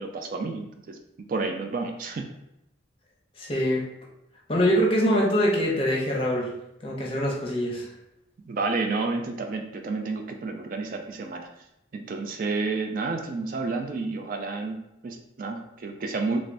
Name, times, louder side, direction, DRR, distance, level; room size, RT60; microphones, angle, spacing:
voice 1, 0.0-2.3 8.5-11.5 11.9-16.4, right 3 dB, 45° right, 4 dB, 0.3 m, -30 dB
voice 2, 3.4-3.8 4.5-6.5 6.8-7.9, equal, 30° left, -2 dB, 0.6 m, -24 dB
3.3 x 3.2 x 2.5 m, 0.86 s
head